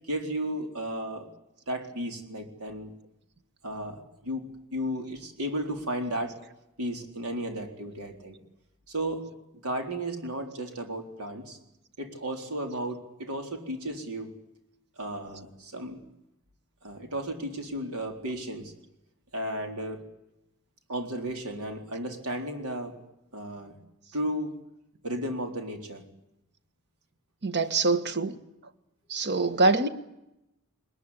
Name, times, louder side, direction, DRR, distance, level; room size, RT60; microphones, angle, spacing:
voice 1, 0.0-1.3 1.7-2.9 3.6-4.4 4.7-6.4 6.8-8.4 8.9-9.3 9.6-11.6 12.0-14.3 15.0-16.0 16.8-18.7 19.3-20.0 20.9-23.0 23.3-23.8 24.1-24.6 25.0-26.0, right 1 dB, 80° right, 4.2 m, -34 dB
voice 2, 27.4-28.4 29.1-29.9, right 3 dB, 50° right, 1.6 m, -24 dB
21.5 x 21.0 x 10.0 m
head